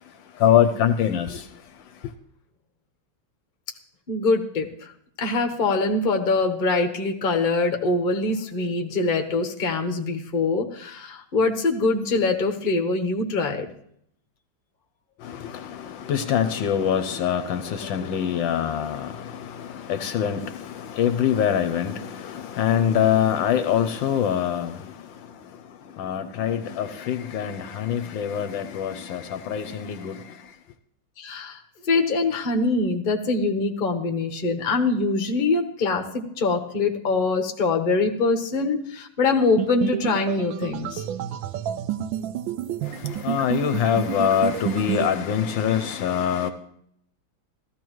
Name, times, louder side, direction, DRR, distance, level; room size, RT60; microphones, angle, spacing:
voice 1, 0.4-1.5 15.2-25.3 26.0-30.3 42.9-46.5, left 9 dB, 75° left, 1.3 m, -24 dB
voice 2, 4.1-4.9 5.2-13.7 31.2-41.0, left 3 dB, 35° left, 1.0 m, -24 dB
sound 1, 39.6-45.1, right 11 dB, 75° right, 1.3 m, -30 dB
15.0 x 13.5 x 3.1 m
omnidirectional pair, 2.2 m